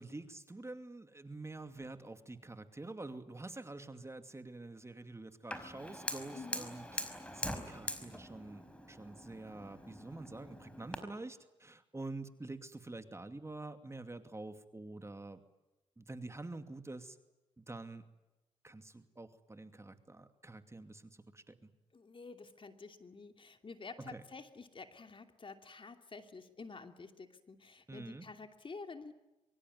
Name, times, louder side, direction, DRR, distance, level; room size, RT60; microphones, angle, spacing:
voice 1, 0.0-15.4 16.0-17.2 17.6-18.1 18.6-21.7 24.0-24.2 27.9-28.3, right 2 dB, 20° right, 9 dB, 2.5 m, -47 dB
Fire, 5.5-11.0, left 1 dB, 10° left, 5.1 m, -43 dB
voice 2, 6.3-6.7 21.9-29.1, left 4 dB, 45° left, 7 dB, 2.8 m, -50 dB
24.0 x 24.0 x 9.5 m, 0.99 s
cardioid pair, 55°, 12 cm